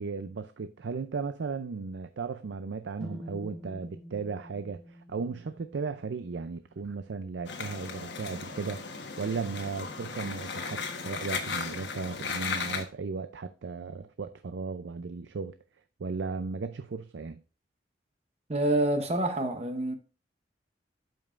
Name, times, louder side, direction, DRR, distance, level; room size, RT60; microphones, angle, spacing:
voice 1, 0.0-15.6 16.0-17.4, right 4 dB, 85° right, 0.5 m, -36 dB
sound 1, 3.0-7.0, equal, ahead, 0.8 m, -46 dB
sound 2, 7.5-12.8, left 5 dB, 70° left, 1.2 m, -36 dB
voice 2, 18.5-19.9, right 1 dB, 35° right, 0.8 m, -27 dB
12.0 x 5.3 x 2.5 m
head